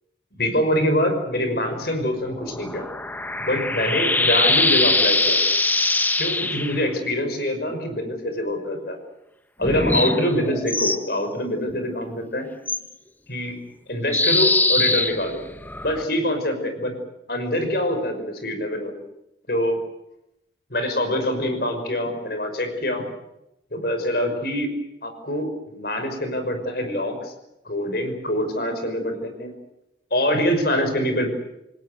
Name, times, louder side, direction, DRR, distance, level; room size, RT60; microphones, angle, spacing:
voice 1, 0.4-2.9 3.4-5.4 6.1-9.0 9.6-12.5 13.3-13.6 13.9-15.4 15.8-17.0 17.3-18.9 19.5-19.8 20.7-23.0 23.7-24.7 25.0-27.3 27.7-29.5 30.1-31.3, left 1 dB, 60° left, 7 dB, 5.6 m, -24 dB
sound 1, 2.3-6.8 9.6-11.0 12.7-12.8 14.1-16.0, left 2 dB, 10° left, 0.9 m, -22 dB
28.5 x 19.0 x 8.0 m, 0.87 s
head